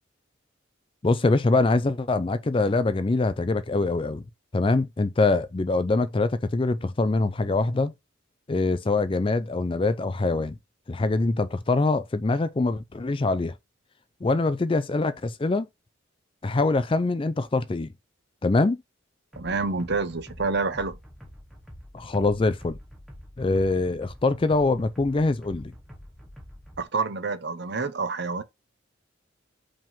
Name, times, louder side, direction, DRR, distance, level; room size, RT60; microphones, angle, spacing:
voice 1, 1.0-4.2 4.5-7.9 8.5-10.6 10.9-13.5 14.2-15.7 16.4-17.9 18.4-18.8 21.9-22.8 23.4-25.7, left 3 dB, 25° left, 0.4 m, -24 dB
sound 1, 19.3-26.8, equal, ahead, 1.1 m, -46 dB
voice 2, 19.4-21.0 26.8-28.4, right 4 dB, 55° right, 0.8 m, -28 dB
5.0 x 3.6 x 5.5 m
head